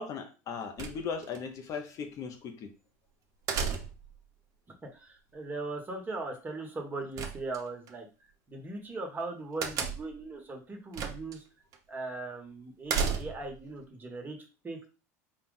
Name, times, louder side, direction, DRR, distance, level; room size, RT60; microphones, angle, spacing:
voice 1, 0.0-2.7, left 6 dB, 45° left, 6 dB, 0.8 m, -38 dB
sound 1, 0.8-1.4 3.5-4.2 7.2-7.9 9.6-10.2 10.9-11.4 11.7-11.8 12.9-13.6, right 6 dB, 45° right, 0.8 m, -33 dB
voice 2, 4.9-8.1 8.5-11.4 11.9-14.4 14.6-14.9, right 3 dB, 25° right, 2 dB, 1.3 m, -39 dB
4.3 x 2.4 x 3.9 m, 0.32 s
supercardioid pair, 105°, 8 cm